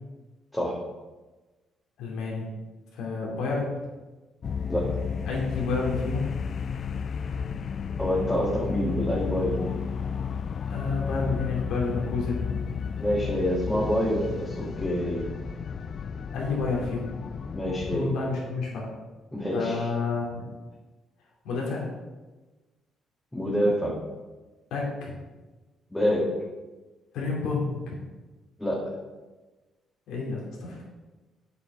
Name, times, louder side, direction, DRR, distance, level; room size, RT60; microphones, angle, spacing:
voice 1, 2.0-2.5 2.9-3.7 5.2-6.3 10.7-12.5 16.3-17.1 17.9-18.7 19.5-20.4 21.4-21.9 24.7-25.1 27.1-28.0 30.1-30.8, left 4 dB, 80° left, -3 dB, 2.7 m, -29 dB
sound 1, 4.4-18.0, left 6 dB, 50° left, 0.4 m, -32 dB
voice 2, 8.0-9.7 13.0-15.2 17.5-18.1 19.3-19.9 23.3-23.9 25.9-26.2 28.6-28.8, equal, 10° left, -4 dB, 1.7 m, -26 dB
8.2 x 5.8 x 5.5 m, 1.2 s
cardioid pair, 90°, 0 cm